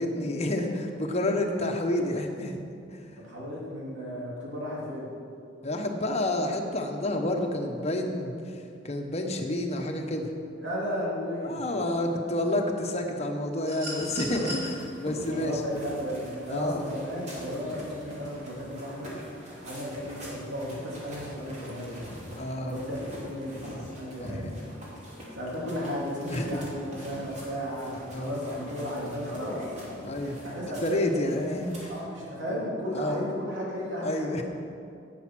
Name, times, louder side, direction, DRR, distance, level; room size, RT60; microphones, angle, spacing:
voice 1, 0.0-2.6 2.9-3.0 5.6-10.3 11.4-15.6 16.5-16.9 22.4-22.8 24.3-24.5 26.3-26.5 28.1-28.4 30.0-30.4 30.8-31.7 32.9-33.2 34.0-34.4, left 1 dB, 35° left, 3 dB, 1.1 m, -29 dB
voice 2, 3.2-5.1 10.6-11.6 15.2-19.1 19.6-22.1 22.7-23.6 24.0-24.7 25.3-29.7 30.4-31.5 31.9-34.4, equal, 75° right, -5 dB, 2.8 m, -34 dB
sound 1, 13.6-14.7 16.2-16.3, right 1 dB, 55° right, 3.3 m, -37 dB
sound 2, 13.9-32.0, equal, 40° right, 2.8 m, -44 dB
10.5 x 8.6 x 6.1 m, 2.5 s
head